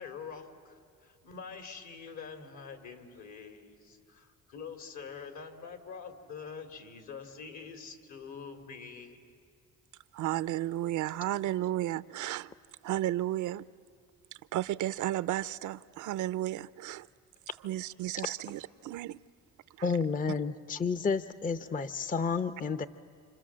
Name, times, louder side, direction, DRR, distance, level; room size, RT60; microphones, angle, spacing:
voice 1, 0.0-9.2, left 6 dB, 65° left, 3.2 m, -45 dB
voice 2, 10.1-12.5 12.8-13.7 14.5-17.1 17.6-19.2 19.8-19.9, right 14 dB, 80° right, 0.6 m, -33 dB
voice 3, 19.8-22.9, left 5 dB, 25° left, 0.7 m, -31 dB
28.0 x 28.0 x 7.5 m
cardioid pair, 90°, 30 cm